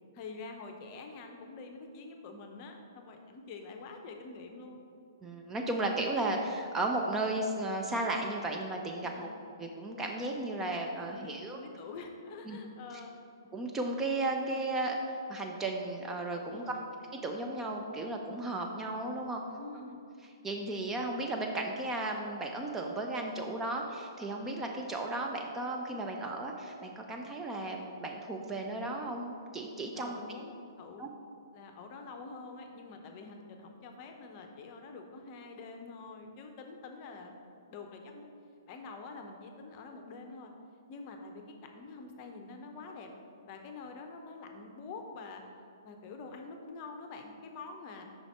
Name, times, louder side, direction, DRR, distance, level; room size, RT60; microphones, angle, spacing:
voice 1, 0.1-4.9 9.0-9.4 11.1-13.2 16.5-16.9 19.6-20.0 29.9-31.1 31.5-37.4 37.7-38.3 38.7-40.5 40.9-43.1 43.5-45.4 45.8-48.0, left 4 dB, 30° left, 4 dB, 0.6 m, -46 dB
voice 2, 5.2-9.3 9.6-11.6 12.5-12.6 13.5-16.8 17.2-19.4 20.4-30.2 31.0-31.1, right 2 dB, 10° right, 1 dB, 0.4 m, -34 dB
5.7 x 4.1 x 4.4 m, 2.5 s
figure-of-eight pair, 120°, 2 cm